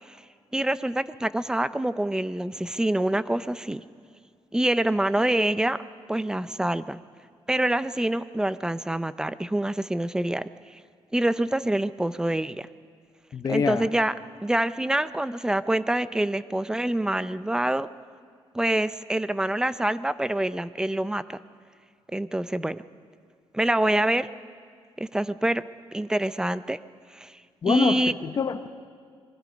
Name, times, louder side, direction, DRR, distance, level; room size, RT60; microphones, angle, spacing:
voice 1, 0.5-3.8 4.5-5.8 6.1-7.0 7.5-10.8 11.1-12.7 13.5-14.1 14.4-17.9 18.5-21.4 22.1-22.8 23.5-24.3 25.0-25.6 25.9-26.8 27.1-27.4 27.7-28.1, right 1 dB, 5° right, 14 dB, 0.6 m, -26 dB
voice 2, 13.3-13.8 27.6-28.7, left 6 dB, 40° left, 8 dB, 1.0 m, -26 dB
26.5 x 21.5 x 5.3 m, 2.1 s
cardioid pair, 135°, 10 cm